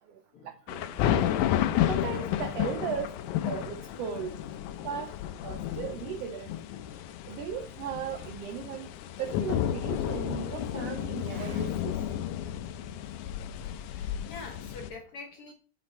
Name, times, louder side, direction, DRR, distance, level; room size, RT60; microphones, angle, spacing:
voice 1, 0.4-1.1 1.9-3.1 3.5-4.4 4.8-5.1 5.4-6.5 7.3-8.9 9.2-12.0, right 8 dB, 90° right, 8 dB, 1.4 m, -37 dB
sound 1, 0.7-14.9, left 11 dB, 80° left, 2.1 m, -32 dB
voice 2, 13.9-15.5, left 4 dB, 65° left, 2 dB, 1.4 m, -46 dB
7.8 x 6.0 x 4.3 m, 0.40 s
omnidirectional pair, 3.6 m